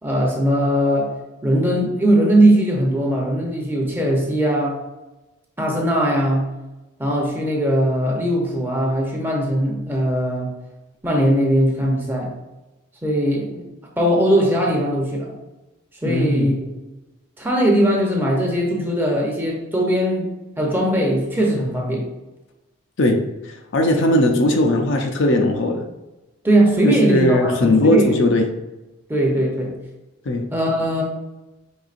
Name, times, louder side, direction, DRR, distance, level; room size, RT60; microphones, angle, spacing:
voice 1, 0.0-1.1 1.4-4.8 5.6-6.5 7.0-10.5 11.0-12.3 13.0-13.7 14.0-15.4 16.0-16.8 17.4-20.3 20.6-22.1 26.4-28.3 29.1-29.7 30.5-31.0, right 1 dB, 10° right, -1 dB, 0.7 m, -20 dB
voice 2, 16.0-16.5 23.0-25.8 26.8-28.5 30.2-30.4, left 1 dB, 60° left, 3 dB, 0.5 m, -18 dB
5.3 x 3.5 x 2.5 m, 1.0 s
head